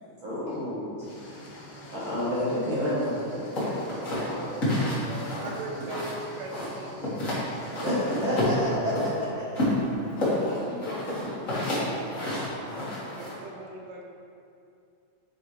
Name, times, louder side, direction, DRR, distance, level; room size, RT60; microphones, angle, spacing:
voice 1, 0.2-0.9 1.9-3.8 5.0-5.4 7.7-8.9 9.5-9.6, equal, 55° right, -9 dB, 1.4 m, -29 dB
sound 1, 1.0-8.8, equal, 55° left, 2.3 m, -45 dB
sound 2, 3.5-6.2 6.5-7.4 7.7-9.1 9.5-13.4, left 1 dB, 35° left, 1.4 m, -29 dB
voice 2, 4.2-4.5 8.2-8.4 8.7-9.7 10.2-12.7, left 2 dB, 75° left, -5 dB, 1.7 m, -41 dB
voice 3, 5.4-7.2 13.0-14.1, right 2 dB, 80° right, 0 dB, 2.4 m, -39 dB
9.1 x 4.8 x 3.2 m, 2.6 s
omnidirectional pair, 3.8 m